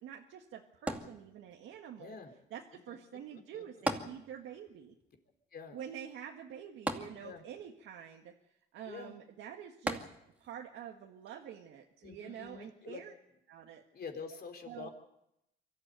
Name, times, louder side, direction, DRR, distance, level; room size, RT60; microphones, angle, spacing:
voice 1, 0.0-2.2 2.5-4.9 5.7-8.3 8.7-10.0 10.4-13.1 13.5-13.8 14.7-14.9, right 9 dB, 85° right, 1 dB, 1.8 m, -47 dB
sound 1, 0.9-1.8 3.9-4.7 5.0-5.1 6.9-7.7 9.9-10.6 11.3-11.4, right 1 dB, 5° right, 2.4 m, -37 dB
voice 2, 2.0-2.3 2.9-3.0 3.3-3.9 5.5-5.8 7.2-7.4 8.9-9.2 12.0-13.0 13.9-14.9, left 5 dB, 50° left, 5 dB, 4.2 m, -46 dB
24.5 x 13.5 x 9.1 m, 0.83 s
cardioid pair, 90°, 20 cm